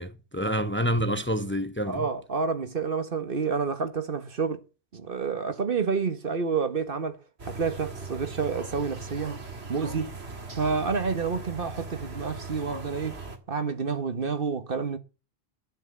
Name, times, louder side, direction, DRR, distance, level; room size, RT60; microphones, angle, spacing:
voice 1, 0.0-2.1, equal, 10° left, 0.9 m, -28 dB
voice 2, 1.9-4.6 4.9-7.2 7.5-9.4 9.7-10.1 10.6-13.2 13.5-15.0, right 5 dB, 55° right, 1.5 m, -29 dB
sound 1, 7.4-13.4, right 3 dB, 75° right, 2.2 m, -39 dB
11.0 x 9.2 x 8.3 m
omnidirectional pair, 1.1 m